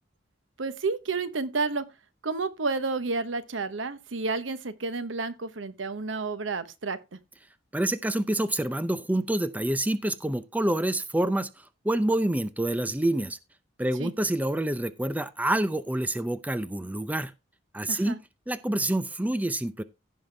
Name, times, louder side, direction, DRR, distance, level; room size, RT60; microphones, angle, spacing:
voice 1, 0.6-1.9 2.2-7.0 14.0-14.1 17.9-18.2, right 4 dB, 85° right, 1.0 m, -30 dB
voice 2, 7.7-11.5 11.8-13.4 13.8-17.3 17.7-18.2 18.5-19.8, right 1 dB, 10° right, 0.5 m, -27 dB
16.0 x 5.6 x 3.4 m
head